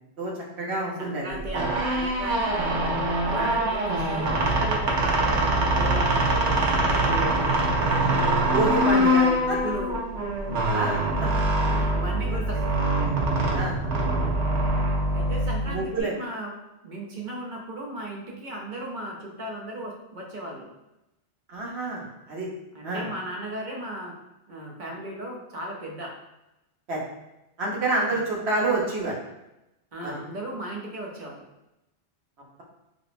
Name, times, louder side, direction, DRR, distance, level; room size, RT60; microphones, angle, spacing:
voice 1, 0.2-1.6 3.3-3.5 8.5-9.6 10.7-11.3 11.8-12.0 13.5-13.8 14.7-14.8 15.6-16.1 21.5-22.5 22.8-23.0 26.9-27.0 27.6-29.1 30.0-30.1, right 2 dB, 65° right, -4 dB, 1.2 m, -28 dB
voice 2, 1.0-2.6 3.2-5.4 5.7-7.4 8.8-10.0 11.9-12.8 15.1-16.5 16.8-20.7 22.7-24.1 24.5-26.1 28.1-28.3 29.9-31.4, right 1 dB, 50° right, -2 dB, 0.7 m, -36 dB
sound 1, 1.4-16.0, right 1 dB, 90° right, 1.0 m, -24 dB
4.9 x 2.0 x 2.5 m, 0.92 s
omnidirectional pair, 1.2 m